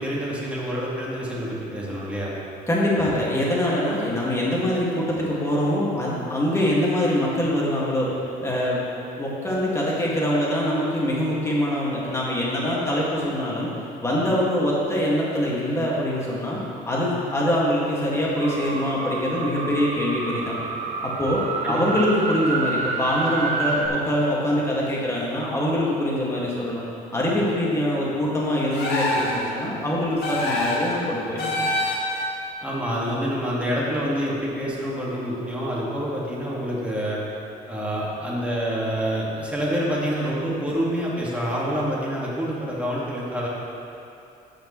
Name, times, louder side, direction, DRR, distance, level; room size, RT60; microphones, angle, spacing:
voice 1, 0.0-2.4 21.6-21.8 32.6-37.2 37.7-43.5, equal, 10° right, -6 dB, 2.0 m, -27 dB
voice 2, 2.7-8.1 8.4-8.8 9.2-13.7 14.0-16.6 16.9-20.5 21.0-26.9 27.1-31.7, left 1 dB, 15° left, -6 dB, 2.1 m, -24 dB
sound 1, 18.4-23.9, right 3 dB, 40° right, 0.9 m, -28 dB
sound 2, 28.7-29.4 30.2-30.9 31.4-32.2, left 1 dB, 75° left, 1.9 m, -25 dB
15.0 x 5.1 x 3.2 m, 2.8 s
cardioid pair, 110°, 17 cm